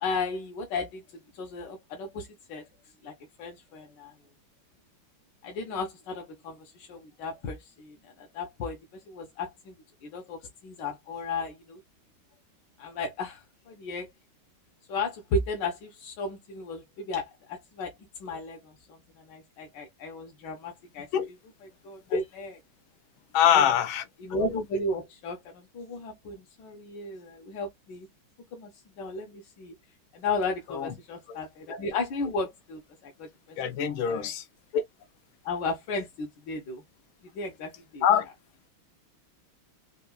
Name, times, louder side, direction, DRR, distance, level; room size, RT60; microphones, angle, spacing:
voice 1, 0.0-2.7 3.0-4.1 5.4-9.8 10.0-11.8 12.8-14.1 14.9-17.9 18.2-21.1 21.8-22.6 23.5-23.6 24.2-28.1 28.5-28.7 29.0-29.7 30.1-33.6 33.8-34.3 34.7-34.8 35.4-36.8 37.3-38.0, left 3 dB, 70° left, 1.2 m, -34 dB
voice 2, 23.3-24.0 30.7-30.9 31.3-31.4 33.6-34.4 38.0-38.3, left 9 dB, 85° left, 1.4 m, -23 dB
4.3 x 2.3 x 2.3 m
omnidirectional pair, 2.2 m